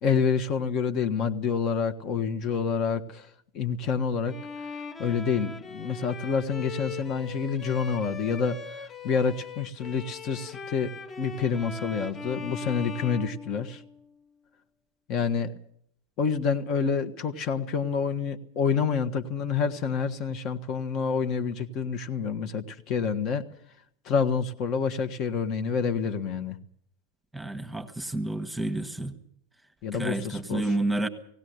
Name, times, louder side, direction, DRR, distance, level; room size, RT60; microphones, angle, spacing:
voice 1, 0.0-3.3 3.5-4.3 5.0-10.9 11.2-13.8 15.1-15.5 16.2-23.4 24.0-26.6 29.8-30.7, left 6 dB, 35° left, 7 dB, 1.6 m, -28 dB
Bowed string instrument, 4.3-14.1, left 5 dB, 20° left, 1.4 m, -40 dB
voice 2, 27.3-29.1 29.9-31.1, right 2 dB, 5° right, 7 dB, 1.6 m, -30 dB
18.5 x 18.0 x 8.1 m, 0.66 s
figure-of-eight pair, 90°, 0 cm